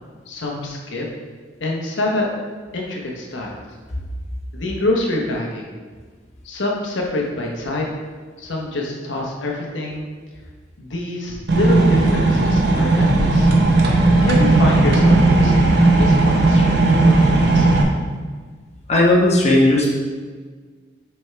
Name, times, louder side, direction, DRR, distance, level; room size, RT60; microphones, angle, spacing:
voice 1, 0.3-1.1 1.6-2.3 2.7-3.6 4.5-5.7 6.4-7.9 8.4-10.1 10.8-13.5 14.2-17.7, left 2 dB, 75° left, -1 dB, 0.9 m, -25 dB
sound 1, 11.5-17.8, right 2 dB, 60° right, 0.8 m, -15 dB
voice 2, 18.9-19.9, left 1 dB, 35° left, -3 dB, 1.0 m, -15 dB
6.5 x 3.5 x 4.4 m, 1.5 s
head